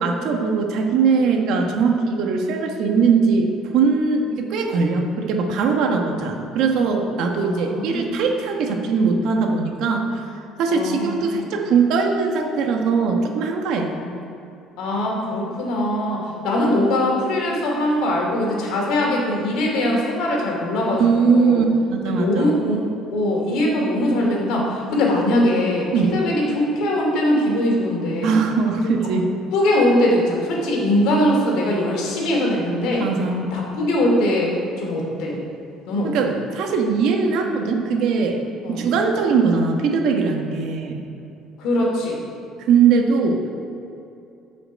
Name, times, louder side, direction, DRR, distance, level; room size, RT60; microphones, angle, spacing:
voice 1, 0.0-3.5 3.7-10.2 10.6-13.9 20.9-21.6 21.9-22.5 25.9-26.2 28.2-29.3 33.0-33.5 36.1-38.4 38.7-41.0 42.6-43.4, right 5 dB, 55° right, 3 dB, 1.2 m, -20 dB
voice 2, 7.4-8.2 10.7-11.5 13.9-14.1 14.8-21.6 22.0-22.8 23.1-28.4 29.5-33.1 33.5-35.4 35.9-36.1 38.6-38.8 41.6-42.2, left 1 dB, 65° left, -1 dB, 2.6 m, -21 dB
14.5 x 5.9 x 5.2 m, 2.7 s
cardioid pair, 180°, 0 cm